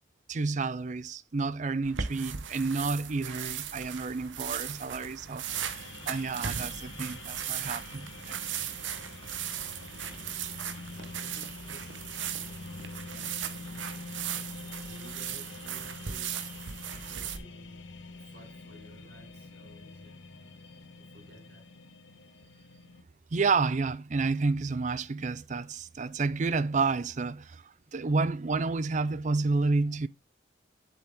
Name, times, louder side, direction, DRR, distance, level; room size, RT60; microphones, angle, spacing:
voice 1, 0.3-5.5 6.1-8.4 23.3-27.6 27.9-30.1, right 4 dB, 40° right, 0.5 m, -30 dB
sound 1, 1.8-17.4, right 8 dB, 90° right, 1.1 m, -37 dB
voice 2, 4.7-5.0 5.4-5.8 9.8-10.4 10.8-12.0 12.8-14.0 14.3-17.8 18.1-20.2 20.9-21.7, right 1 dB, 60° right, 2.7 m, -55 dB
sound 2, 5.5-23.0, left 3 dB, 85° left, 1.2 m, -46 dB
7.5 x 6.9 x 3.6 m
head